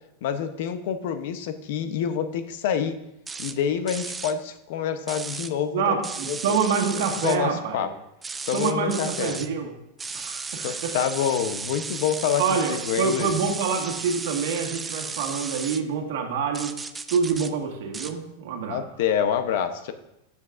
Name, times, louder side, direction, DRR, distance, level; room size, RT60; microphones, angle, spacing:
voice 1, 0.2-3.0 3.4-5.9 6.3-6.4 7.0-7.9 8.5-9.4 10.6-12.4 12.7-13.3 18.7-19.9, left 8 dB, 55° left, 9 dB, 0.7 m, -27 dB
sound 1, 3.3-3.5 3.9-4.3 5.1-5.5 6.0-7.4 8.2-9.5 10.0-15.8 16.5-17.5 17.9-18.1, right 4 dB, 10° right, 0.3 m, -34 dB
voice 2, 5.7-7.9 8.5-9.7 10.1-11.0 12.4-16.7 17.1-18.8, right 6 dB, 65° right, 3 dB, 1.6 m, -26 dB
13.0 x 7.2 x 2.5 m, 0.84 s
supercardioid pair, 175°, 0 cm